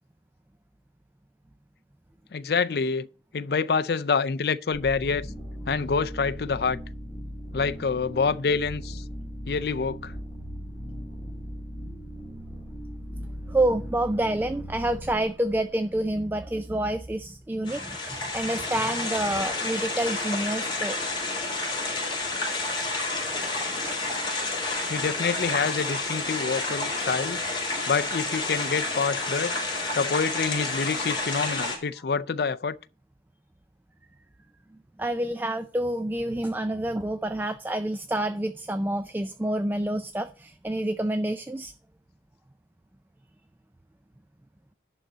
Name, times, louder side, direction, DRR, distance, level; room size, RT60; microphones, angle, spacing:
voice 1, 2.3-3.1 3.3-5.3 5.7-6.8 7.5-9.0 9.4-10.1 24.9-27.4 27.9-29.6 29.9-32.8, left 5 dB, 60° left, 0.4 m, -27 dB
sound 1, 4.7-16.5, equal, 10° left, 1.8 m, -39 dB
voice 2, 13.5-21.0 35.0-41.7, right 1 dB, 10° right, 0.3 m, -28 dB
sound 2, 17.7-31.8, left 2 dB, 25° left, 3.7 m, -30 dB
11.5 x 3.9 x 7.4 m
head